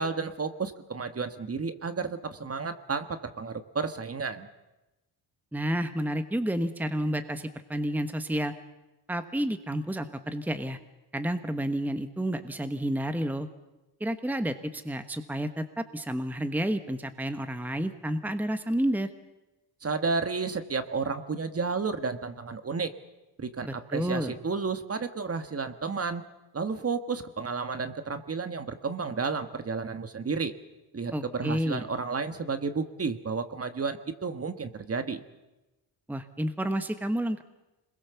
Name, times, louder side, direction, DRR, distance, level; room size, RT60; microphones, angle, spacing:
voice 1, 0.0-4.5 19.8-22.9 23.4-26.3 26.5-30.5 30.9-35.2, right 4 dB, 30° right, 10 dB, 1.6 m, -32 dB
voice 2, 5.5-8.5 9.1-10.8 11.1-13.5 14.0-19.1 23.6-24.4 31.1-31.9 36.1-37.4, right 1 dB, 5° right, 9 dB, 1.2 m, -30 dB
26.5 x 21.5 x 7.0 m, 1.0 s
cardioid pair, 95°, 44 cm